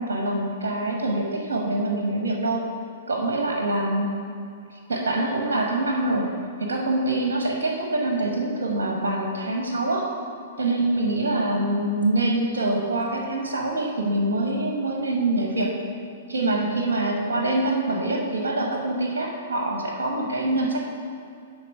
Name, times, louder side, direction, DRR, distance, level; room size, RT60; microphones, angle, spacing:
voice 1, 0.0-2.7 3.1-4.1 4.7-6.3 6.6-10.1 10.6-15.8 16.3-20.8, right 2 dB, 70° right, 1 dB, 1.0 m, -25 dB
9.5 x 3.7 x 5.3 m, 2.5 s
figure-of-eight pair, 110°, 0 cm